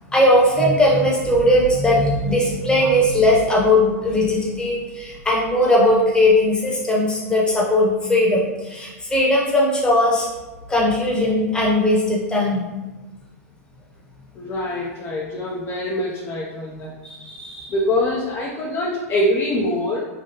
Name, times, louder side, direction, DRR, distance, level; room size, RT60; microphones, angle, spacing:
voice 1, 0.1-10.3 10.7-12.7 17.0-17.7, left 1 dB, 10° left, -4 dB, 0.9 m, -18 dB
voice 2, 14.3-16.9 17.7-20.0, left 1 dB, 30° left, -4 dB, 0.5 m, -24 dB
3.2 x 2.2 x 2.9 m, 1.1 s
hypercardioid pair, 105°, 8 cm